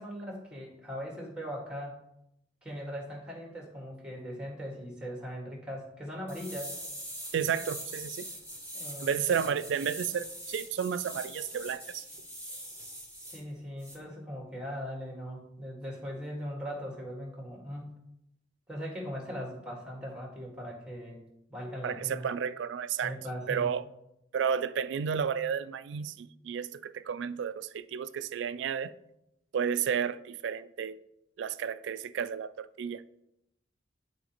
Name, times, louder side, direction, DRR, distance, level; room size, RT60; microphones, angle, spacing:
voice 1, 0.0-2.0 2.6-6.7 8.7-9.2 13.3-18.0 18.7-21.2 21.5-22.3 23.0-23.7, equal, 5° right, 1.6 m, -39 dB
sound 1, 6.3-13.4 13.8-14.0, equal, 10° left, 2.3 m, -42 dB
voice 2, 7.3-8.3 9.0-12.1 21.8-23.2 23.5-23.8 24.3-28.9 29.5-31.0 31.4-33.0, right 7 dB, 70° right, 0.3 m, -32 dB
11.0 x 4.0 x 2.9 m
head